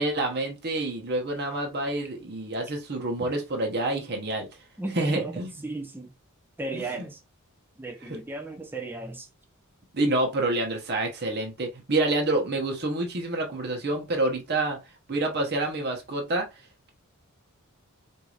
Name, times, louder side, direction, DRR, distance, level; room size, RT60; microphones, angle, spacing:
voice 1, 0.0-4.5 4.9-5.5 6.7-7.1 8.0-8.2 9.9-14.8 15.1-16.5, right 2 dB, 45° right, 0.9 m, -28 dB
voice 2, 4.8-5.3 5.6-6.1 6.6-7.2 7.8-9.3, right 2 dB, 10° right, 0.6 m, -35 dB
4.6 x 2.7 x 2.4 m
head